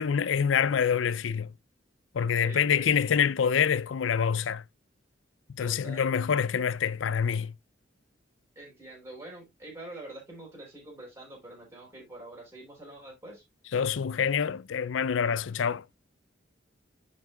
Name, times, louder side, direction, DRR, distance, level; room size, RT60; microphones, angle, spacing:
voice 1, 0.0-1.5 2.1-4.6 5.5-7.5 13.7-15.9, left 7 dB, 80° left, 0.5 m, -26 dB
voice 2, 2.4-3.2 5.6-6.1 8.6-13.4, right 2 dB, 15° right, 3.7 m, -45 dB
10.5 x 5.5 x 2.3 m
head